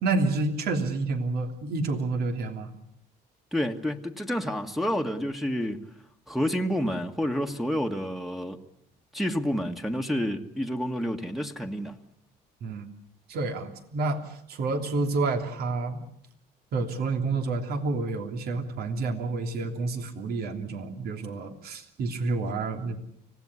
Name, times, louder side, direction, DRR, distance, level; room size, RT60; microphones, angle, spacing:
voice 1, 0.0-2.7 12.6-12.8 13.3-16.0 16.7-23.0, right 3 dB, 65° right, 3.2 m, -29 dB
voice 2, 3.5-5.8 6.3-8.6 9.1-12.0, equal, ahead, 1.7 m, -29 dB
25.0 x 18.0 x 9.7 m
cardioid pair, 110°, 17 cm